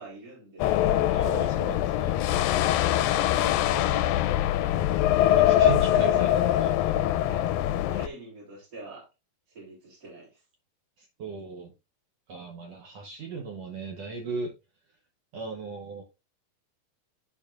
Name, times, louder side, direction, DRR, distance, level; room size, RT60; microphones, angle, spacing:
voice 1, 0.0-1.4 3.0-4.8 6.0-7.5 7.9-9.1 9.5-10.4, right 2 dB, 40° right, 4.1 m, -45 dB
sound 1, 0.6-8.1, left 12 dB, 80° left, 2.1 m, -23 dB
voice 2, 1.1-2.2 5.3-6.3 6.6-6.9 11.0-11.7 12.3-14.5 15.3-16.0, right 4 dB, 85° right, 1.4 m, -37 dB
13.5 x 4.8 x 2.4 m
omnidirectional pair, 4.4 m